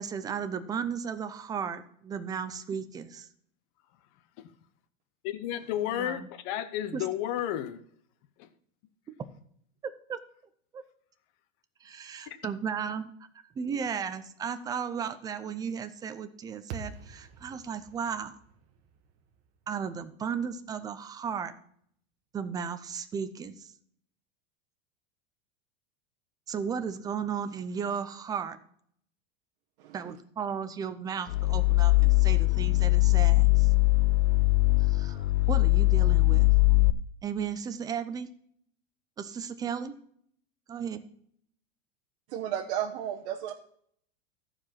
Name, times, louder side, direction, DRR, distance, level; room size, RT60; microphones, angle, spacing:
voice 1, 0.0-3.3 5.9-6.3 6.9-7.0 9.8-10.2 10.7-10.8 11.8-13.1 13.6-18.4 19.7-21.5 22.3-23.7 26.5-28.6 29.9-33.7 34.8-36.5 37.2-38.3 39.2-39.9 40.7-41.0, right 7 dB, 10° right, 10 dB, 0.4 m, -35 dB
voice 2, 5.2-7.8 8.4-8.5, left 11 dB, 40° left, 12 dB, 0.8 m, -32 dB
sound 1, 16.7-21.0, right 5 dB, 40° right, 1.3 m, -47 dB
sound 2, 31.3-36.9, left 22 dB, 80° left, 0.6 m, -22 dB
voice 3, 42.3-43.5, right 10 dB, 60° right, 0 dB, 1.1 m, -33 dB
13.5 x 4.9 x 5.7 m, 0.65 s
supercardioid pair, 160°, 32 cm